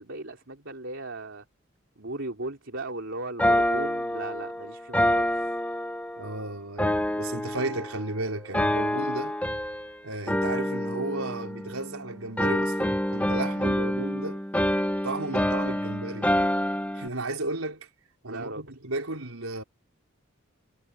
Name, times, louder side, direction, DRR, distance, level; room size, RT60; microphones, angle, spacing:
voice 1, 0.0-1.4 2.0-5.3 18.3-18.7, right 2 dB, 60° right, 3.6 m, -37 dB
sound 1, 3.4-6.3 6.8-8.1 8.5-9.9 10.3-12.0 12.4-17.1, left 1 dB, 5° left, 1.7 m, -27 dB
voice 2, 6.2-9.3 10.0-14.4 15.0-16.3 16.9-17.9 18.2-19.6, right 2 dB, 85° right, 4.5 m, -34 dB
head